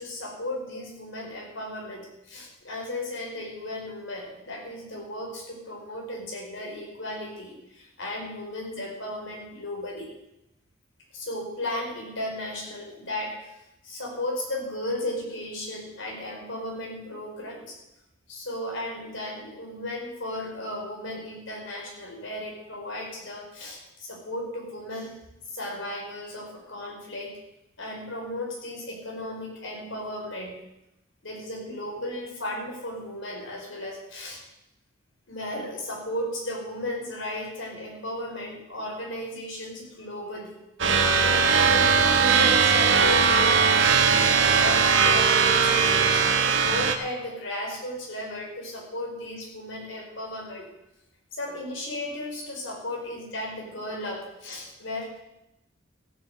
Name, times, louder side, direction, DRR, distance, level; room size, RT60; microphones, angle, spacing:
voice 1, 0.0-10.1 11.1-17.8 18.3-25.1 25.5-27.4 27.8-30.5 31.2-34.4 35.3-40.6 41.6-46.2 46.6-50.7 51.3-55.2, left 1 dB, 65° left, -1 dB, 5.0 m, -35 dB
sound 1, 40.8-46.9, right 5 dB, 60° right, 1.2 m, -20 dB
14.5 x 7.7 x 7.9 m, 0.90 s
head